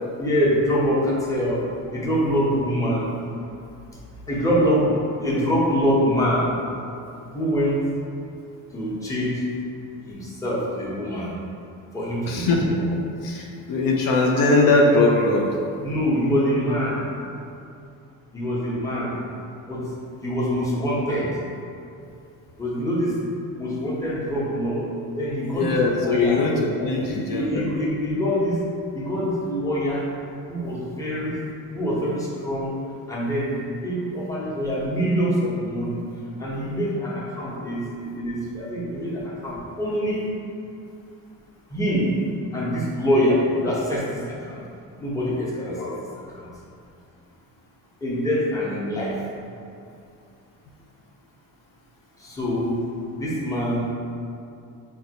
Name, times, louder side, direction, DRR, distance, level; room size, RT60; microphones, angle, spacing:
voice 1, 0.2-1.6 1.9-3.1 4.3-6.5 7.3-7.8 8.7-9.4 10.1-11.3 11.9-12.6 15.8-17.0 18.3-19.1 19.7-19.8 20.2-21.3 22.6-23.2 23.6-24.9 25.2-26.4 26.9-28.6 28.9-30.0 30.5-31.3 31.7-32.7 33.1-33.5 33.8-36.0 36.4-40.2 41.7-42.1 42.5-44.0 44.4-44.6 45.0-45.9 46.4-46.5 48.0-49.1 52.2-52.8 53.2-53.9, equal, 10° left, -6 dB, 0.8 m, -24 dB
voice 2, 12.3-12.6 13.2-15.5 25.4-27.7 45.8-46.0, left 2 dB, 65° left, -1 dB, 0.5 m, -21 dB
3.8 x 2.2 x 2.8 m, 2.5 s
cardioid pair, 80°, 37 cm